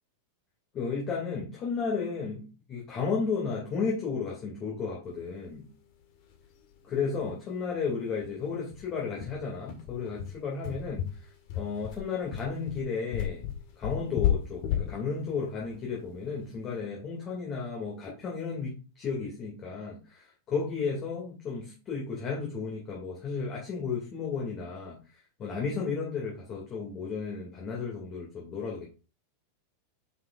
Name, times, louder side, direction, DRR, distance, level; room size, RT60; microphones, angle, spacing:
voice 1, 0.7-5.6 6.8-11.0 11.6-13.5 13.8-25.0 25.4-28.9, left 5 dB, 30° left, -2 dB, 2.4 m, -33 dB
sound 1, 6.3-6.4 6.7-6.8 7.1-7.3 7.7-7.8 8.2-16.7, left 10 dB, 45° left, 1.7 m, -33 dB
9.4 x 6.0 x 2.5 m, 0.33 s
figure-of-eight pair, 90°, 0 cm